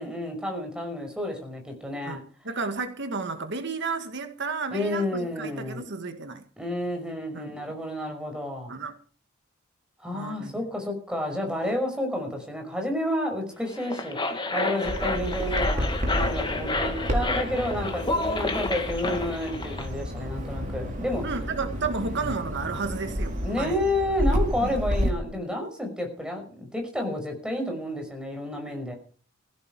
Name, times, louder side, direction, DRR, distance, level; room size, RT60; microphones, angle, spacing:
voice 1, 0.0-2.2 4.7-5.9 6.6-8.7 10.0-21.2 22.0-22.3 23.4-28.9, left 1 dB, 5° right, 5.6 m, -30 dB
voice 2, 2.0-6.4 7.3-7.6 8.7-9.0 10.1-10.6 21.2-23.8 24.6-24.8, right 4 dB, 60° right, 1.8 m, -32 dB
sound 1, 13.7-19.9, left 2 dB, 25° left, 2.2 m, -30 dB
Bird vocalization bird call bird song, 14.8-25.1, equal, 40° right, 4.7 m, -30 dB
17.0 x 15.5 x 4.7 m
head